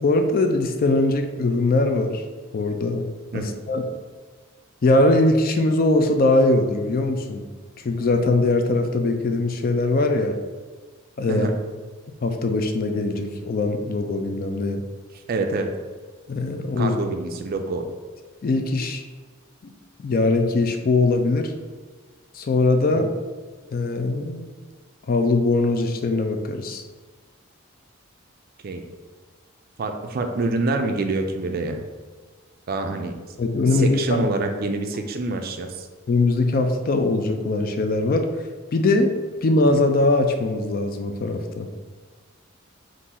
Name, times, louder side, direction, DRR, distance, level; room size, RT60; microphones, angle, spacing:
voice 1, 0.0-2.2 2.5-3.1 3.3-3.8 4.8-7.4 7.8-10.4 11.2-11.5 12.2-14.8 16.3-17.0 18.4-19.0 19.6-19.7 20.0-21.5 22.3-23.1 23.7-24.5 25.1-26.8 33.4-34.3 36.1-38.3 38.7-39.1 39.4-41.7, left 2 dB, 45° left, 5 dB, 0.4 m, -21 dB
voice 2, 15.3-15.7 16.8-17.9 28.6-28.8 29.8-31.8 32.7-33.1 33.7-35.9, right 3 dB, 45° right, 5 dB, 0.4 m, -26 dB
3.8 x 2.5 x 4.1 m, 1.4 s
head